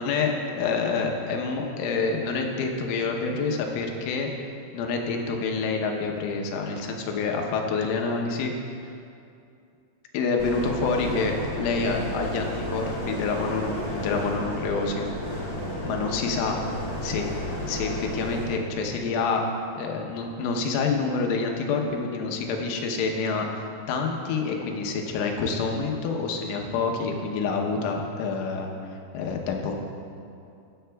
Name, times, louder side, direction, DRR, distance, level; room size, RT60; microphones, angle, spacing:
voice 1, 0.0-4.3 4.7-8.5 10.1-15.1 15.8-16.6 17.0-17.2 17.7-19.4 19.7-28.7 29.1-29.7, left 4 dB, 90° left, 2 dB, 3.4 m, -27 dB
sound 1, 10.4-18.4, left 1 dB, 40° left, 1.2 m, -32 dB
22.0 x 7.7 x 2.3 m, 2.6 s
omnidirectional pair, 5.4 m